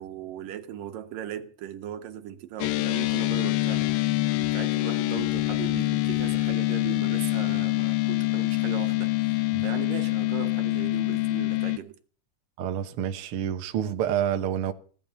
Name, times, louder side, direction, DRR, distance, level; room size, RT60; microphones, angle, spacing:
voice 1, 0.0-4.1 4.4-12.0, right 11 dB, 65° right, 2.8 m, -38 dB
sound 1, 2.6-11.8, left 19 dB, 85° left, 2.8 m, -25 dB
voice 2, 12.6-14.7, right 10 dB, 90° right, 1.2 m, -28 dB
17.0 x 10.5 x 7.0 m
omnidirectional pair, 4.4 m